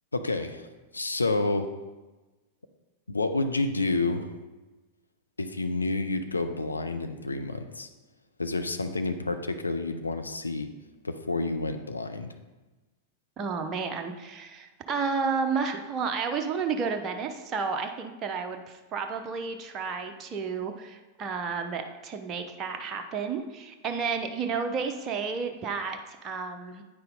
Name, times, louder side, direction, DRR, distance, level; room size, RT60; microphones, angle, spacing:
voice 1, 0.1-0.7 0.9-1.7 3.1-4.3 5.4-7.9 8.4-10.7 11.0-12.3, left 2 dB, 80° left, 7 dB, 0.5 m, -29 dB
voice 2, 13.4-26.8, right 5 dB, 30° right, 4 dB, 0.7 m, -31 dB
8.9 x 5.5 x 4.0 m, 1.2 s
figure-of-eight pair, 90°, 0 cm